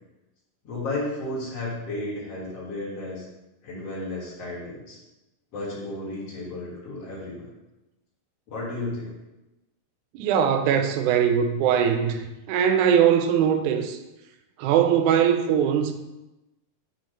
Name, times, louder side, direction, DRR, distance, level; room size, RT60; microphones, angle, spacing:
voice 1, 0.6-3.2 3.6-5.0 5.5-7.5 8.5-9.1, left 2 dB, 50° left, -6 dB, 2.6 m, -33 dB
voice 2, 10.1-14.0 14.6-15.9, right 8 dB, 80° right, 6 dB, 1.9 m, -21 dB
8.0 x 2.8 x 5.1 m, 0.99 s
omnidirectional pair, 3.9 m